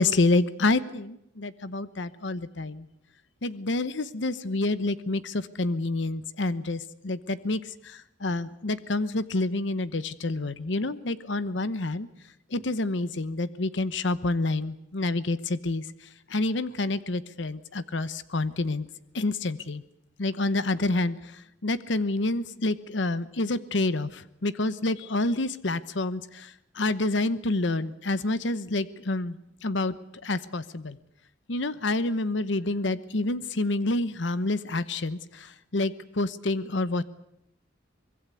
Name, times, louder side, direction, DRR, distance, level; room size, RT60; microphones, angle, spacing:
voice 1, 0.0-2.9 3.4-12.1 12.5-15.8 16.3-18.9 19.1-19.8 20.2-29.4 29.6-29.9 30.2-31.0 31.5-37.0, left 2 dB, 70° left, 15 dB, 0.9 m, -28 dB
24.5 x 21.5 x 8.3 m, 0.78 s
head